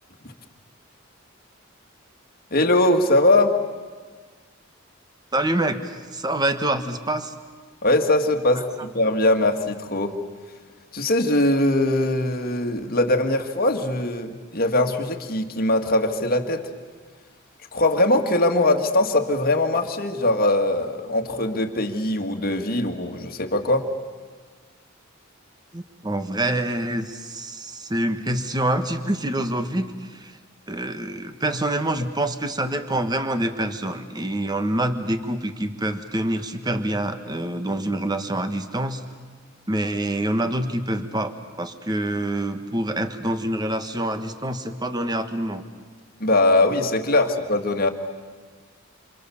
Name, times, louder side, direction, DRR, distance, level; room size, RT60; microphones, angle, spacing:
voice 1, 2.5-3.6 7.8-10.2 10.9-16.7 17.7-23.9 46.2-47.9, left 2 dB, 45° left, 4 dB, 2.0 m, -21 dB
voice 2, 5.3-7.3 8.5-8.6 25.7-30.3 30.7-39.0 39.7-45.6 47.2-47.3, right 1 dB, 20° right, 8 dB, 1.4 m, -26 dB
28.0 x 27.0 x 7.1 m, 1.5 s
head